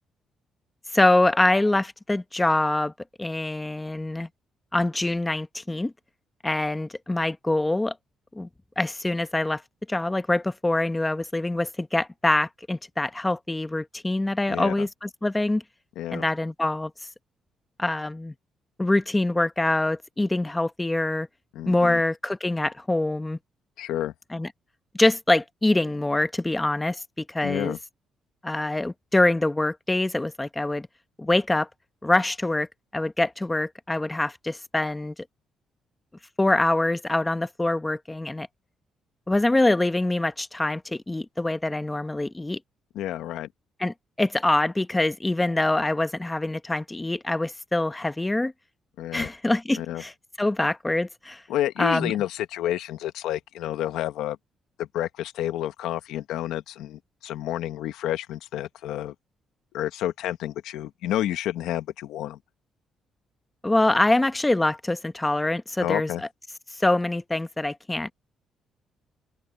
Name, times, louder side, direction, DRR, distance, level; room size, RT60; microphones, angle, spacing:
voice 1, 0.9-2.9 3.2-4.3 4.7-5.9 6.4-7.9 8.3-8.5 8.8-9.6 9.9-15.6 16.1-16.9 17.8-18.3 18.8-21.3 21.7-23.4 24.3-24.5 24.9-27.8 28.4-30.9 31.2-31.7 32.0-32.7 32.9-35.1 36.4-38.5 39.3-42.6 43.8-48.5 49.1-50.1 50.4-51.4 51.8-52.1 63.6-66.1 66.8-68.1, left 2 dB, 15° left, 1.2 m, -24 dB
voice 2, 14.5-14.9 15.9-16.2 21.5-22.0 23.8-24.1 27.4-27.8 42.9-43.5 49.0-49.3 49.8-50.0 51.5-54.4 54.8-59.1 59.7-62.4 65.8-66.2, left 13 dB, 90° left, 1.4 m, -30 dB
open air
cardioid pair, 90°, 0 cm